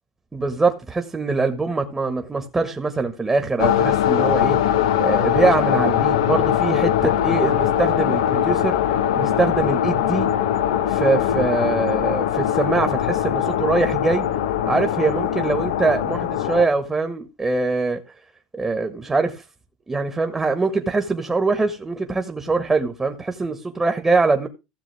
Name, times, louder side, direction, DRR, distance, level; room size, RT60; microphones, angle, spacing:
voice 1, 0.3-8.8 9.1-10.3 10.9-14.2 14.6-18.0 18.5-19.4 19.9-24.5, right 3 dB, 15° right, 1.7 m, -23 dB
sound 1, 3.6-16.7, left 10 dB, 80° left, 1.0 m, -21 dB
16.0 x 7.1 x 3.5 m
hypercardioid pair, 95°, 3 cm